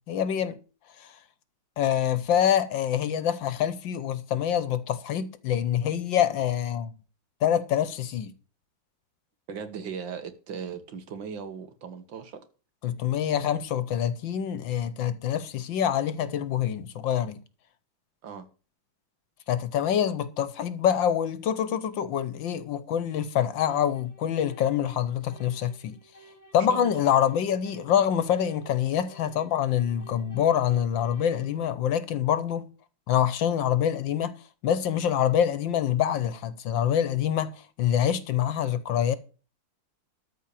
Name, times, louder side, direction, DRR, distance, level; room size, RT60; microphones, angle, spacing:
voice 1, 0.1-0.6 1.0-1.2 1.8-6.9 7.4-8.3 12.8-17.4 19.5-26.0 26.5-32.7 33.1-34.4 34.6-39.2, left 9 dB, 70° left, 1.5 m, -26 dB
voice 2, 9.5-12.4 18.2-18.5 26.5-27.0, right 6 dB, 70° right, 2.1 m, -38 dB
sound 1, 23.7-31.6, right 2 dB, 15° left, 0.7 m, -54 dB
13.5 x 4.6 x 8.3 m
omnidirectional pair, 2.2 m